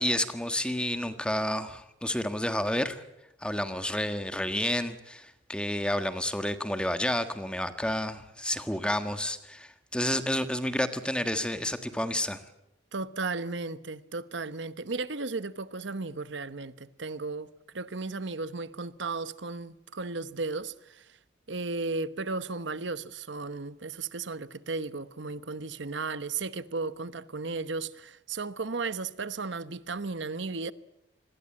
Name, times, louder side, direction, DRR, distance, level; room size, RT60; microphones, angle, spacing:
voice 1, 0.0-3.0 3.4-12.4, left 1 dB, 5° left, 1.5 m, -30 dB
voice 2, 12.9-21.2 21.5-30.7, right 3 dB, 65° right, 1.0 m, -35 dB
26.5 x 21.0 x 8.7 m
head